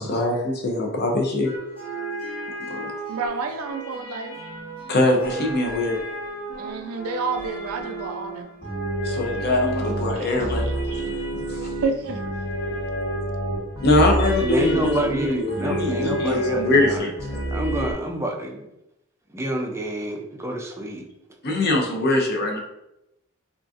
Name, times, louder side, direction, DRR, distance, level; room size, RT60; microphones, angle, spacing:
voice 1, 0.0-1.5 2.7-2.8 4.9-6.0 9.0-11.7 13.8-17.1 21.4-22.6, left 2 dB, 50° left, 1 dB, 0.6 m, -23 dB
sound 1, 1.4-17.9, right 1 dB, 75° left, 1.2 m, -30 dB
voice 2, 3.1-4.4 6.6-8.5 10.2-10.3 10.9-11.1 11.8-12.2, right 4 dB, 85° right, 6 dB, 0.4 m, -29 dB
voice 3, 14.4-18.7 19.3-21.0, right 1 dB, 15° right, 2 dB, 0.4 m, -28 dB
3.8 x 2.4 x 2.4 m, 0.87 s
head